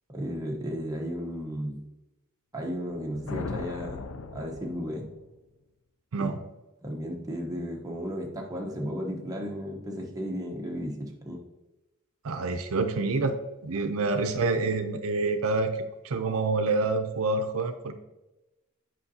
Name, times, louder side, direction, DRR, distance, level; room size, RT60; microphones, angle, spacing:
voice 1, 0.1-1.9 2.5-4.0 4.3-5.1 6.1-6.3 6.8-11.4, equal, 15° right, 0 dB, 0.9 m, -34 dB
sound 1, 2.8-5.3, left 4 dB, 65° left, 0.4 m, -39 dB
voice 2, 12.2-13.4 13.6-15.7 16.0-17.9, right 3 dB, 75° right, 8 dB, 0.5 m, -27 dB
8.1 x 5.7 x 2.7 m, 1.0 s
head